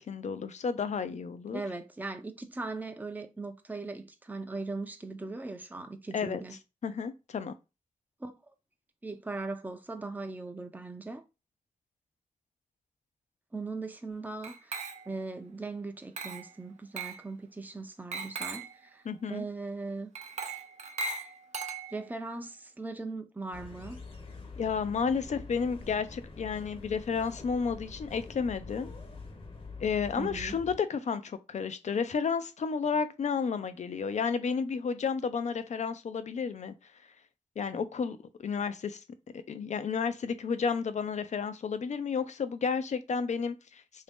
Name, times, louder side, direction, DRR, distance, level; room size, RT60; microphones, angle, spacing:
voice 1, 0.0-1.6 6.1-6.4 6.8-7.5 19.1-19.4 24.6-28.9 29.8-36.7 37.6-39.0 39.5-44.0, left 6 dB, 60° left, 0.5 m, -32 dB
voice 2, 1.5-6.6 8.2-8.3 9.0-11.2 13.5-19.0 19.3-20.1 21.9-24.0 30.2-30.6, right 3 dB, 10° right, 0.6 m, -39 dB
Glass, 14.4-15.3 16.2-16.5 17.0-17.3 18.1-18.8 20.1-22.2, right 4 dB, 60° right, 0.5 m, -38 dB
sound 1, 23.5-30.8, left 4 dB, 45° left, 0.9 m, -45 dB
2.9 x 2.7 x 3.5 m
cardioid pair, 55°, 14 cm